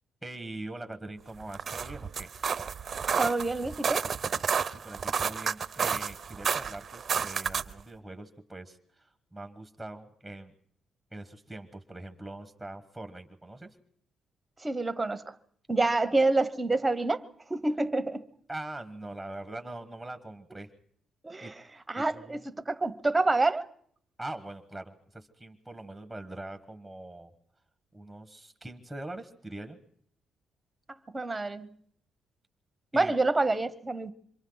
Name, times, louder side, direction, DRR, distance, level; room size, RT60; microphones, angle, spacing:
voice 1, 0.2-2.3 4.8-10.5 11.1-13.7 18.5-20.7 21.4-22.5 24.2-27.3 27.9-29.8 32.9-33.1, right 2 dB, ahead, 1.5 m, -42 dB
sound 1, 1.4-7.8, right 6 dB, 45° right, 0.7 m, -31 dB
voice 2, 3.2-4.1 14.6-15.3 15.7-17.2 17.5-18.2 21.2-21.6 21.9-23.6 31.1-31.7 32.9-34.1, right 2 dB, 15° right, 1.1 m, -27 dB
27.0 x 24.0 x 4.0 m
cardioid pair, 90°, 0 cm